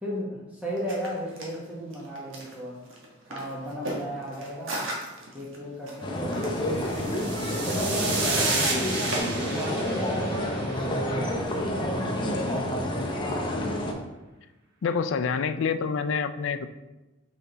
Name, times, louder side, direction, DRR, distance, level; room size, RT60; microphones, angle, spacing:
voice 1, 0.0-2.8 3.3-4.9 5.3-7.2 7.7-13.1, equal, 5° right, -5 dB, 1.0 m, -35 dB
sound 1, 0.7-9.2, right 1 dB, 75° right, 1.3 m, -39 dB
sound 2, 6.0-13.9, left 1 dB, 25° left, 0.8 m, -29 dB
sound 3, 6.7-11.2, right 3 dB, 55° right, 1.3 m, -31 dB
voice 2, 14.8-16.7, left 5 dB, 65° left, 11 dB, 0.4 m, -27 dB
5.8 x 4.3 x 3.9 m, 1.1 s
head